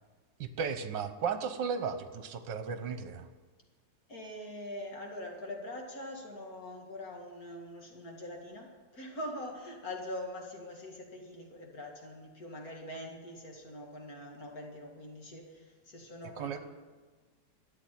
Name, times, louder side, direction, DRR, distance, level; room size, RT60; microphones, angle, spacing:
voice 1, 0.4-3.3 16.4-16.6, right 6 dB, 70° right, 9 dB, 1.6 m, -35 dB
voice 2, 4.1-16.6, left 1 dB, 50° left, 1 dB, 2.5 m, -43 dB
13.5 x 8.5 x 9.2 m, 1.3 s
omnidirectional pair, 2.1 m